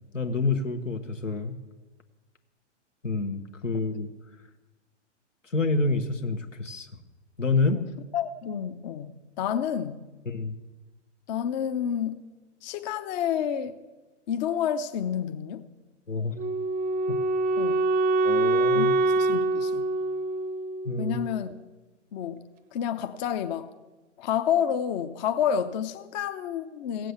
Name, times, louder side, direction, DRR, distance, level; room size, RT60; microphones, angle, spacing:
voice 1, 0.1-1.5 3.0-4.1 5.5-6.9 7.4-7.8 10.2-10.5 16.1-16.3 18.2-18.9 20.8-21.2, left 3 dB, 85° left, 1.3 m, -27 dB
voice 2, 8.1-10.1 11.3-12.2 12.6-13.8 14.3-15.6 17.6-17.8 18.7-18.9 19.2-19.9 21.0-21.5 22.1-22.4 22.7-23.7 24.2-27.1, left 9 dB, 35° left, 0.7 m, -29 dB
Wind instrument woodwind instrument, 16.4-21.4, right 2 dB, 25° right, 0.6 m, -25 dB
16.0 x 7.7 x 7.9 m
figure-of-eight pair, 110°, 36 cm